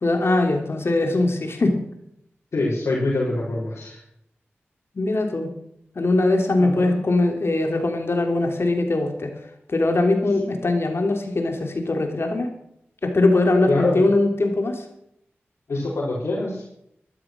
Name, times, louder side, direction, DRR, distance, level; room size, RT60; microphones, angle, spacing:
voice 1, 0.0-1.8 5.0-5.5 6.0-9.3 9.7-12.5 13.0-14.8, left 2 dB, 65° left, 4 dB, 3.5 m, -21 dB
voice 2, 2.5-4.0 6.6-7.0 13.7-14.0 15.7-16.6, left 2 dB, 85° left, -7 dB, 4.9 m, -25 dB
13.5 x 12.5 x 6.3 m, 0.76 s
cardioid pair, 40°, 5 cm